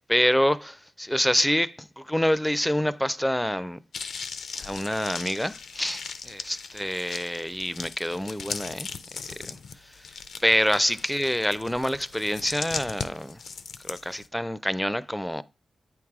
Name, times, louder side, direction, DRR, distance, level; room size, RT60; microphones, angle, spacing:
voice 1, 0.1-3.8 4.5-8.9 9.4-10.1 10.4-13.4 13.8-15.4, equal, 5° left, 0.4 m, -27 dB
sound 1, 3.9-14.3, left 5 dB, 80° left, 0.6 m, -38 dB
8.6 x 4.7 x 3.6 m
cardioid pair, 90°, 0 cm